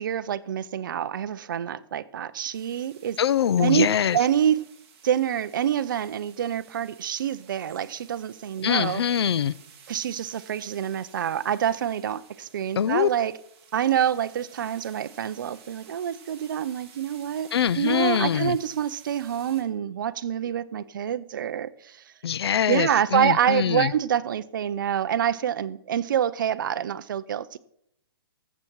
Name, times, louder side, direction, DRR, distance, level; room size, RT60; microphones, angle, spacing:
voice 1, 0.0-3.2 3.6-3.9 4.1-4.6 5.0-9.0 9.9-13.3 13.7-22.0 22.7-27.6, right 9 dB, 55° right, 0.6 m, -26 dB
sound 1, 2.5-19.6, right 7 dB, 25° right, 1.9 m, -53 dB
voice 2, 3.2-4.2 8.6-9.5 12.8-13.1 17.5-18.6 22.2-23.9, left 8 dB, 80° left, 0.4 m, -23 dB
14.5 x 7.2 x 4.6 m
hypercardioid pair, 170°, 13 cm